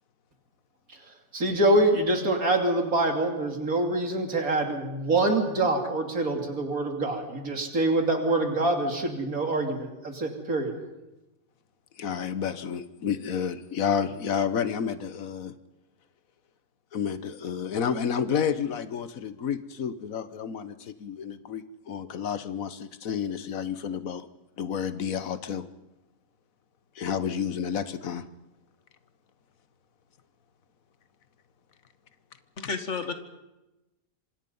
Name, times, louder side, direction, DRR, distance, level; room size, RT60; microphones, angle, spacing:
voice 1, 1.3-10.7, right 2 dB, 80° right, 4 dB, 3.2 m, -25 dB
voice 2, 12.0-15.5 16.9-24.3 24.6-25.6 27.0-28.2, left 7 dB, 75° left, 13 dB, 1.5 m, -30 dB
voice 3, 32.6-33.2, left 5 dB, 55° left, 8 dB, 2.1 m, -31 dB
26.0 x 25.0 x 5.5 m, 0.99 s
omnidirectional pair, 1.5 m